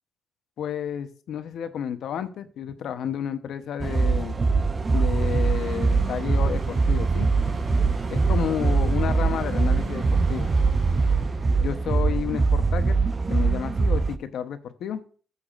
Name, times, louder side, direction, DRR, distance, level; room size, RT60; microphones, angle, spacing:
voice 1, 0.6-4.4 4.9-7.3 8.1-10.5 11.6-13.0 13.3-15.0, left 8 dB, 70° left, 10 dB, 0.8 m, -31 dB
sound 1, 3.8-14.2, right 4 dB, 30° right, 0.5 m, -22 dB
sound 2, 5.1-11.8, right 3 dB, 45° right, 3.3 m, -39 dB
13.0 x 7.0 x 2.5 m, 0.42 s
cardioid pair, 90°, 0 cm